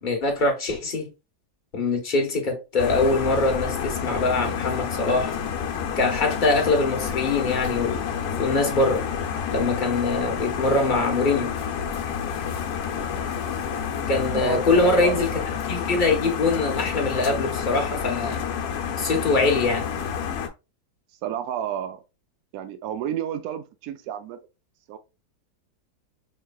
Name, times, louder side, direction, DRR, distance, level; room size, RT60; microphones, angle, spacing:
voice 1, 0.0-1.1 1.7-5.4 6.0-8.1 8.4-9.0 9.5-11.5 14.1-15.4 15.7-18.4 19.0-19.9, left 3 dB, 35° left, 1.0 m, -23 dB
sound 1, 2.8-20.5, left 7 dB, 70° left, 1.2 m, -29 dB
voice 2, 14.3-15.2 21.2-22.0 22.5-24.4 24.9-25.0, right 10 dB, 70° right, 1.0 m, -31 dB
5.1 x 3.3 x 2.3 m
omnidirectional pair, 1.8 m